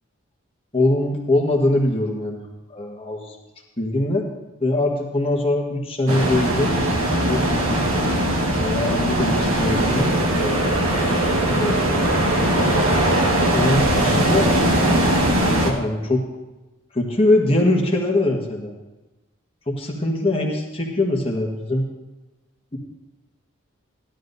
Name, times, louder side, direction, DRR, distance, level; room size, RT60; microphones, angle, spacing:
voice 1, 0.7-2.4 2.7-3.3 3.8-4.3 4.6-7.0 7.3-8.1 8.6-10.6 11.2-12.3 13.5-14.5 15.6-16.2 16.9-18.7 19.7-21.9, left 1 dB, 25° left, 0 dB, 1.5 m, -22 dB
sound 1, 6.1-15.7, right 1 dB, 85° right, 1.7 m, -20 dB
15.0 x 11.5 x 2.7 m, 1.1 s
head